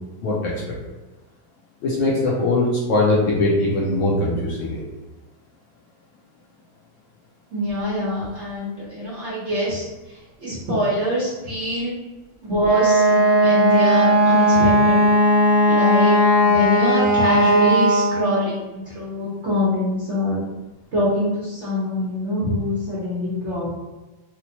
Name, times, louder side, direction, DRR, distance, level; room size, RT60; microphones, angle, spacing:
voice 1, 0.2-0.8 1.8-4.8, left 2 dB, 75° left, -4 dB, 1.3 m, -21 dB
voice 2, 7.5-11.9 12.4-15.0 15.7-20.4 20.9-23.7, left 1 dB, 75° right, -8 dB, 0.6 m, -24 dB
Wind instrument woodwind instrument, 12.6-18.3, right 1 dB, 30° left, 1.0 m, -16 dB
4.3 x 2.1 x 2.7 m, 1.1 s
omnidirectional pair, 2.4 m